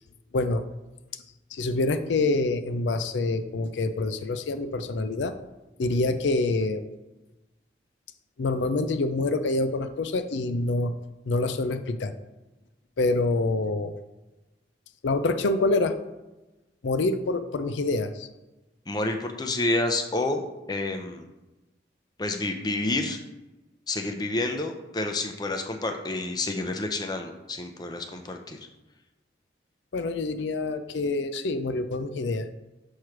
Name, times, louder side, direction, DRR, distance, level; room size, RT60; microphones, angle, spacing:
voice 1, 0.3-0.6 1.5-5.3 5.8-6.8 8.4-10.9 11.3-12.1 13.0-13.9 15.0-15.9 16.8-18.3 29.9-32.5, left 2 dB, 75° left, 10 dB, 0.4 m, -26 dB
voice 2, 18.9-21.3 22.2-23.2 23.9-28.6, left 2 dB, 20° left, 5 dB, 0.5 m, -29 dB
6.4 x 3.1 x 5.8 m, 1.1 s
head